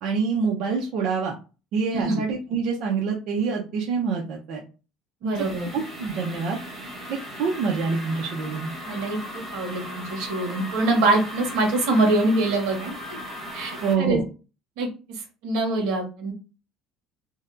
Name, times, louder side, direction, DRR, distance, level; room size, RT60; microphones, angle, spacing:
voice 1, 0.0-1.4 1.7-4.6 5.2-5.4 5.7-6.6 7.1-8.7 13.8-14.2, right 5 dB, 50° right, -1 dB, 0.6 m, -26 dB
voice 2, 5.2-5.7 8.8-12.9 13.5-13.7 14.0-14.2 14.8-16.3, right 2 dB, 70° right, 2 dB, 1.2 m, -24 dB
sound 1, 5.4-13.9, equal, 10° right, 1.1 m, -37 dB
2.8 x 2.2 x 3.7 m, 0.33 s
cardioid pair, 165°, 0 cm